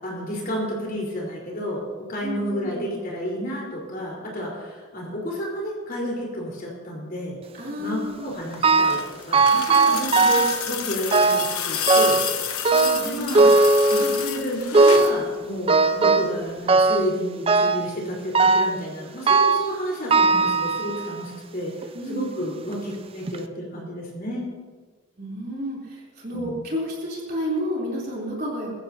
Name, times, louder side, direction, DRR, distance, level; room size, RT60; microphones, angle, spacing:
voice 1, 0.0-1.8 2.1-7.4 7.8-12.2 13.0-13.5 13.9-24.5 26.3-26.6, equal, 40° left, -4 dB, 4.7 m, -31 dB
voice 2, 2.2-2.9 7.5-8.3 9.8-10.1 12.7-13.4 21.9-22.7 25.2-28.8, equal, 40° right, -4 dB, 3.9 m, -31 dB
sound 1, 8.4-15.2 16.5-16.6, left 8 dB, 85° left, 1.2 m, -30 dB
sound 2, 8.6-9.1 9.3-10.6 11.1-11.5 11.9-12.3 12.7-14.3 14.7-15.2 15.7-16.4 16.7-17.1 17.5-17.9 18.3-18.8 19.3-19.7 20.1-21.2 21.8-21.9 22.7-22.8 23.3-23.4, right 3 dB, 25° right, 0.4 m, -18 dB
22.0 x 14.5 x 3.0 m, 1.4 s
head